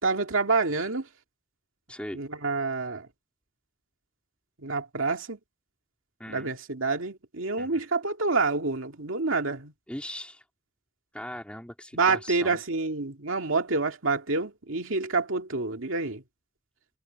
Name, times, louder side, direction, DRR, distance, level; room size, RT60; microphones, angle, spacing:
voice 1, 0.0-1.1 2.1-3.1 4.6-5.4 6.3-9.7 11.9-16.2, right 3 dB, 90° right, 2.3 m, -28 dB
voice 2, 1.9-2.2 6.2-6.5 7.6-7.8 9.9-10.4 11.1-12.6, left 1 dB, 5° left, 3.6 m, -39 dB
head